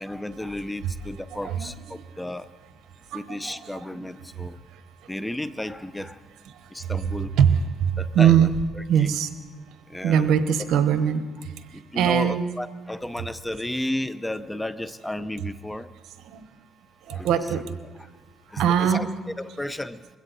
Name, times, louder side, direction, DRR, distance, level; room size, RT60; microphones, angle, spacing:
voice 1, 0.0-2.5 3.1-4.6 5.1-6.2 6.7-7.3 8.0-8.5 9.0-9.1 9.9-10.3 11.7-15.9 17.1-17.3 18.5-19.1 19.4-20.0, left 1 dB, 10° left, 14 dB, 0.7 m, -33 dB
voice 2, 1.3-2.0 3.1-4.1 4.4-4.8 6.5-8.5 8.9-9.3 10.0-12.4 16.2-16.4 17.1-17.6 18.6-19.0, right 8 dB, 85° right, 10 dB, 1.0 m, -23 dB
21.5 x 16.0 x 4.1 m, 1.3 s
cardioid pair, 90°, 0 cm